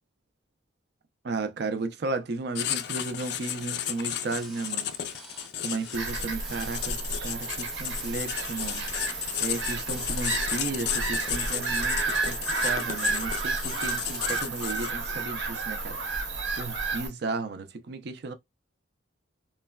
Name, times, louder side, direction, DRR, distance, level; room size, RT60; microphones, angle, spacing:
voice 1, 1.2-4.9 5.6-8.8 9.1-16.1 16.6-18.3, right 3 dB, 60° right, 0.5 m, -34 dB
Writing, 2.6-15.1, left 10 dB, 60° left, 0.3 m, -33 dB
sound 1, 3.4-14.4, equal, ahead, 0.6 m, -49 dB
Bird vocalization bird call bird song / Gull seagull, 5.9-17.1, right 3 dB, 90° right, 1.0 m, -31 dB
3.1 x 2.2 x 2.2 m
head